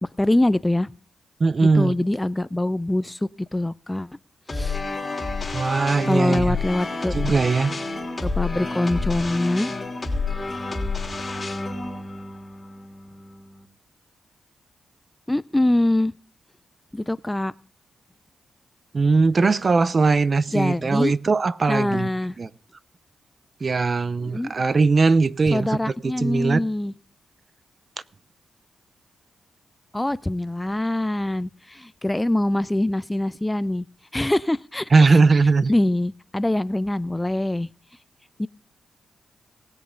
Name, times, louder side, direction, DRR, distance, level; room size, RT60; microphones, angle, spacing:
voice 1, 0.2-0.9 1.7-4.2 4.5-4.8 6.1-7.2 8.2-9.7 15.3-16.1 16.9-17.5 20.5-21.1 21.7-22.4 24.2-24.5 25.5-26.9 29.9-33.8 34.1-35.2 35.7-37.7 38.4-38.5, left 1 dB, 15° left, 0.4 m, -24 dB
voice 2, 1.4-1.9 5.5-6.6 7.1-7.7 18.9-22.1 22.4-22.5 23.6-26.6 34.9-35.7, right 4 dB, 45° right, 0.6 m, -20 dB
sound 1, 4.5-13.6, left 3 dB, 30° left, 3.0 m, -29 dB
19.0 x 6.9 x 3.8 m
cardioid pair, 60°, 0 cm